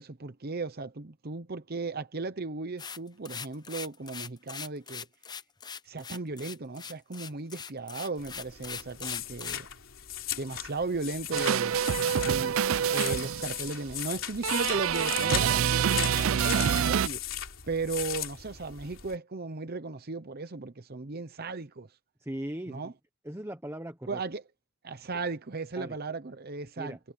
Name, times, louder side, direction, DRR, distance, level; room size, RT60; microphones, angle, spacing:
voice 1, 0.0-5.0 5.9-9.7 10.4-11.8 12.2-12.6 12.9-17.2 17.7-21.9 22.7-22.9 24.1-24.4 24.8-27.0, right 3 dB, 45° right, 0.9 m, -36 dB
sound 1, 2.8-9.7, left 6 dB, 20° left, 0.6 m, -40 dB
sound 2, 8.2-19.1, left 12 dB, 70° left, 3.4 m, -38 dB
sound 3, 11.3-13.7 14.4-17.1, right 8 dB, 70° right, 0.4 m, -26 dB
voice 2, 22.2-22.9 23.2-24.2 25.7-26.0 26.8-27.0, right 1 dB, 10° right, 1.1 m, -38 dB
head